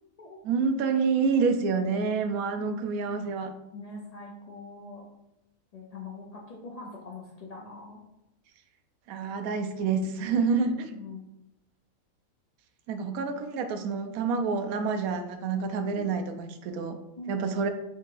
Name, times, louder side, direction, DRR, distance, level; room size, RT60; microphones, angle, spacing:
voice 1, 0.4-3.5 9.1-10.9 12.9-17.0 17.3-17.7, right 5 dB, 85° right, 7 dB, 1.0 m, -28 dB
voice 2, 3.7-5.1 5.7-8.0 10.9-11.3 16.0-16.1 17.2-17.5, left 3 dB, 80° left, -2 dB, 0.3 m, -42 dB
3.4 x 2.9 x 4.5 m, 0.88 s
omnidirectional pair, 1.5 m